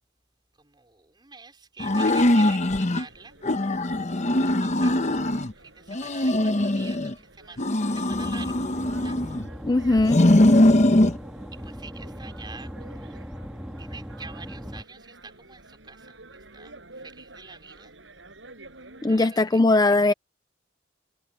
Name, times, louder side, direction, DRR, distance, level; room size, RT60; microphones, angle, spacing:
voice 1, 0.6-3.4 4.6-9.2 11.5-13.3 13.8-16.2 16.5-17.9 19.0-19.6, right 4 dB, 25° right, 4.6 m, -46 dB
sound 1, 1.8-3.0 3.4-5.5 5.9-7.1 7.6-9.5 10.0-11.2, left 1 dB, 40° left, 1.1 m, -21 dB
sound 2, 2.7-19.2, right 2 dB, 75° right, 5.9 m, -51 dB
sound 3, 8.1-14.8, equal, 5° right, 2.7 m, -39 dB
voice 2, 9.6-10.2 19.0-20.1, left 2 dB, 20° left, 0.5 m, -20 dB
head